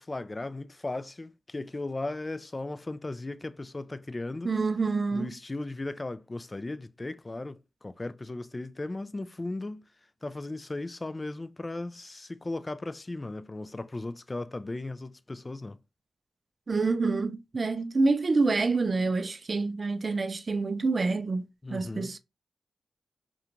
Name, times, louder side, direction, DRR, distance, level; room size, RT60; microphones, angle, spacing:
voice 1, 0.0-4.5 5.1-9.9 10.2-15.8 21.6-22.1, left 2 dB, 35° left, 0.3 m, -36 dB
voice 2, 4.4-5.3 16.7-21.5 21.7-22.2, right 3 dB, 50° right, 0.3 m, -27 dB
2.4 x 2.2 x 2.9 m
cardioid pair, 45°, 0 cm